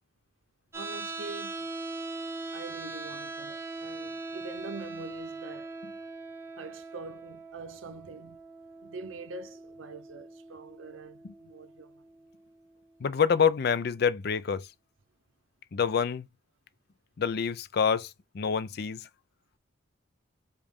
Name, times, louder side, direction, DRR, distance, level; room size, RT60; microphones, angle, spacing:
sound 1, 0.7-12.8, right 3 dB, 15° right, 0.9 m, -41 dB
voice 1, 0.7-1.7 2.5-5.8 6.6-8.4 8.8-12.0, right 3 dB, 75° right, 0.6 m, -44 dB
voice 2, 13.0-14.7 15.7-16.3 17.2-19.0, left 6 dB, 50° left, 0.4 m, -27 dB
5.2 x 2.4 x 3.5 m
head